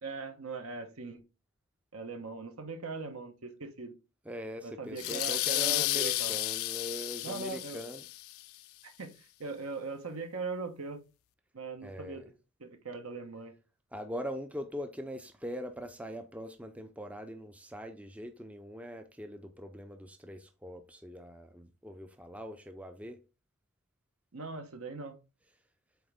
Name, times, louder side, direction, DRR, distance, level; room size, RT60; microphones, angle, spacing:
voice 1, 0.0-1.2 1.9-3.9 4.6-6.4 7.2-7.8 8.8-11.0 11.5-12.2 12.6-13.5 24.3-25.2, right 3 dB, 80° right, 1.1 m, -40 dB
voice 2, 4.3-8.1 11.8-12.2 13.9-23.2, equal, 5° right, 0.4 m, -42 dB
sound 1, 5.0-8.4, left 17 dB, 75° left, 0.3 m, -32 dB
7.9 x 3.5 x 3.4 m
head